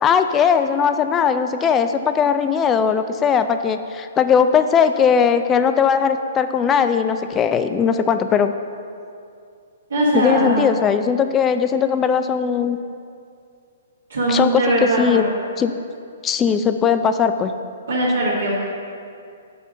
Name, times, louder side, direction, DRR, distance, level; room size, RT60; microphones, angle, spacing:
voice 1, 0.0-8.5 10.1-12.8 14.3-15.3 15.6-15.7 16.2-17.5, left 7 dB, 20° left, 9 dB, 0.3 m, -19 dB
voice 2, 9.9-10.8 14.1-15.3 17.9-18.5, right 1 dB, 70° right, -9 dB, 1.6 m, -20 dB
5.4 x 5.0 x 6.3 m, 2.4 s
figure-of-eight pair, 120°, 0 cm